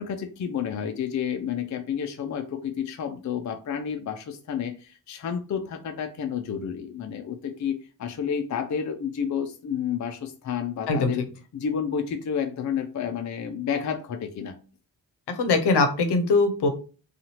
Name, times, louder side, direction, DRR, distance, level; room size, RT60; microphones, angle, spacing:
voice 1, 0.0-11.2 11.5-14.6, left 7 dB, 40° left, 6 dB, 0.5 m, -30 dB
voice 2, 15.4-16.7, left 3 dB, 65° left, 7 dB, 0.8 m, -21 dB
2.7 x 2.4 x 2.9 m, 0.36 s
cardioid pair, 55°, 43 cm